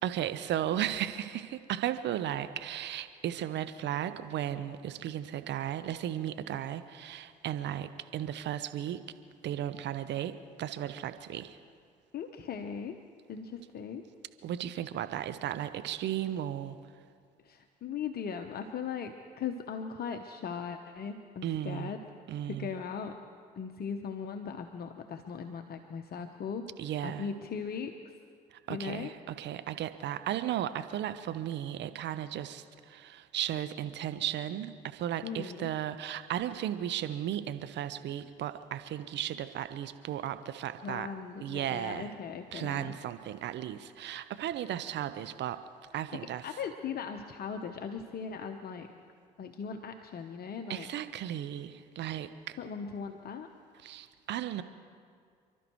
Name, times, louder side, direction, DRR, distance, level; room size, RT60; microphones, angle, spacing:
voice 1, 0.0-9.0 9.4-11.6 14.4-16.8 21.4-21.9 22.3-22.7 26.8-27.3 28.5-41.1 41.4-42.1 42.5-45.6 45.9-46.5 50.7-52.6 53.8-54.6, right 11 dB, 60° right, 12 dB, 0.8 m, -35 dB
voice 2, 12.1-13.0 13.3-14.0 17.4-22.0 22.5-23.2 23.6-26.6 27.0-27.9 28.7-29.1 35.2-35.7 40.8-42.9 46.4-48.9 49.4-50.9 52.6-53.5, left 6 dB, 50° left, 6 dB, 1.0 m, -38 dB
29.0 x 12.5 x 3.1 m, 2.2 s
hypercardioid pair, 55°, 21 cm